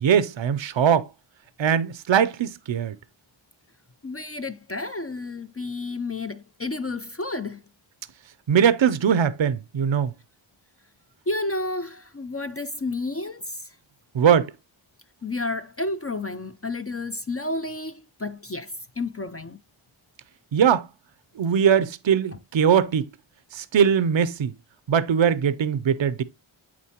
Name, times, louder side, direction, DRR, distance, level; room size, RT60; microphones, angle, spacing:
voice 1, 0.0-1.1 1.6-2.9 8.5-10.1 14.1-14.5 20.5-20.9 21.4-23.1 23.5-24.5 24.9-26.2, right 8 dB, 65° right, 0.6 m, -21 dB
voice 2, 4.0-7.6 11.3-13.7 15.2-19.6, left 2 dB, 30° left, 0.5 m, -31 dB
8.6 x 4.3 x 2.9 m
wide cardioid pair, 55°, 49 cm